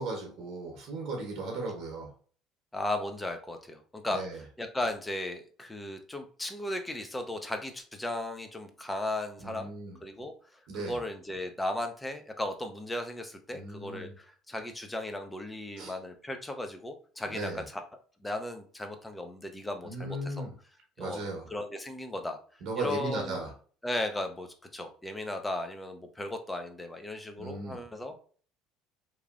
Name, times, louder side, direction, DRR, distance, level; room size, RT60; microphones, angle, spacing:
voice 1, 0.0-2.1 4.1-4.4 9.4-10.0 10.7-11.0 13.5-14.1 15.8-15.9 17.3-17.6 19.8-20.5 21.0-21.5 22.6-23.5 27.4-27.8, right 2 dB, 70° right, 0 dB, 0.8 m, -36 dB
voice 2, 2.7-4.2 4.6-9.7 10.0-17.8 18.2-20.5 21.0-22.4 22.8-23.4 23.8-28.2, left 1 dB, 10° left, 6 dB, 0.5 m, -36 dB
3.0 x 2.4 x 2.4 m, 0.44 s
supercardioid pair, 90°, 0 cm